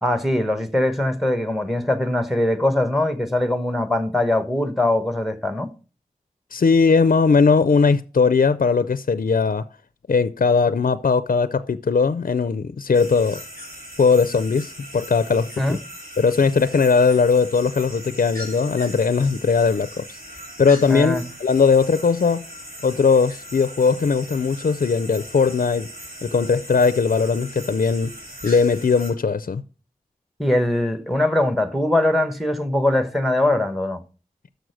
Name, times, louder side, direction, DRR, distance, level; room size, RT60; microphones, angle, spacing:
voice 1, 0.0-5.7 15.6-15.8 20.9-21.2 30.4-34.0, left 1 dB, ahead, 1.0 m, -21 dB
voice 2, 6.5-9.6 10.1-13.4 14.0-15.8 16.2-20.0 20.6-22.4 22.8-25.9 26.2-28.1 28.4-29.6, left 5 dB, 65° left, 0.4 m, -19 dB
sound 1, 12.9-29.1, equal, 80° right, 3.4 m, -39 dB
6.5 x 6.2 x 6.4 m
wide cardioid pair, 40°, 15 cm